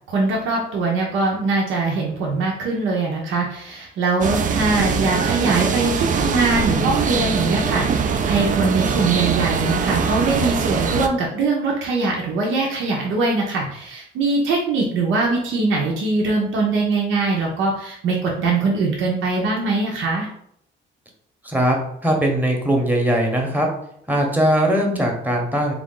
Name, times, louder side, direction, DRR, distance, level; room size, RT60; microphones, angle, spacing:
voice 1, 0.1-20.3, right 3 dB, 80° right, -2 dB, 0.8 m, -22 dB
sound 1, 4.2-11.1, right 5 dB, 40° right, 0.4 m, -22 dB
voice 2, 21.4-21.8 22.0-23.7 24.1-25.7, equal, 10° right, 0 dB, 0.9 m, -20 dB
3.4 x 2.4 x 3.7 m, 0.70 s
cardioid pair, 90°, 20 cm